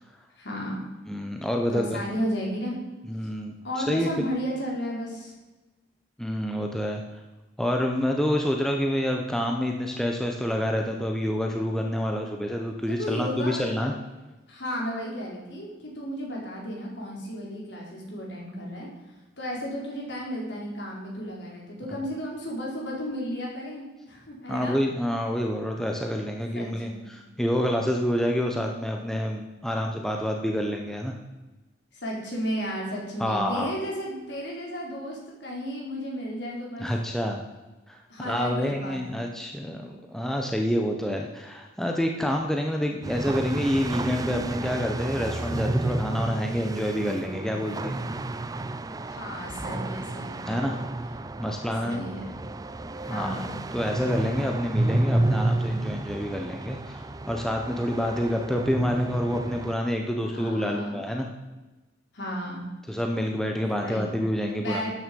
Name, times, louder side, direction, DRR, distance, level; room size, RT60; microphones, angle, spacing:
voice 1, 0.4-0.8 1.7-2.7 3.6-5.3 12.9-13.7 14.5-18.9 19.4-24.8 26.5-27.1 31.9-36.9 38.1-39.3 49.1-50.6 51.8-52.3 53.0-53.6 60.2-61.0 62.1-62.7 63.8-64.1 64.6-64.9, equal, 60° left, -2 dB, 4.7 m, -33 dB
voice 2, 1.1-2.0 3.1-4.1 6.2-7.0 7.6-13.9 24.5-31.1 33.2-33.7 36.8-37.4 37.9-48.0 50.5-50.7 51.4-52.0 53.1-53.4 53.7-61.3 62.9-64.8, equal, 5° left, 2 dB, 1.0 m, -28 dB
sound 1, 43.0-59.7, right 1 dB, 20° right, 0.4 m, -30 dB
13.0 x 9.5 x 5.4 m, 1.1 s
head